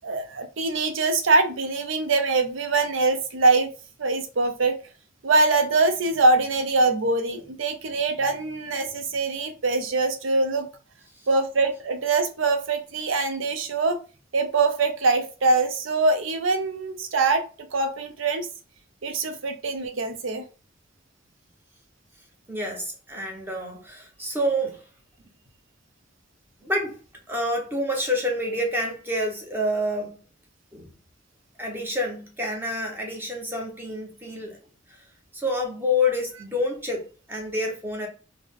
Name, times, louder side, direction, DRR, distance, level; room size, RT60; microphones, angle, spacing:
voice 1, 0.0-3.7 4.0-4.8 5.2-10.7 11.3-14.0 14.3-17.5 17.7-18.5 19.0-20.5, right 3 dB, 75° right, 0.6 m, -23 dB
voice 2, 22.5-24.8 26.6-27.0 27.3-30.2 30.7-30.9 31.6-34.6 34.9-35.0 35.3-38.1, left 1 dB, 10° right, 0.8 m, -28 dB
3.6 x 2.1 x 3.5 m
head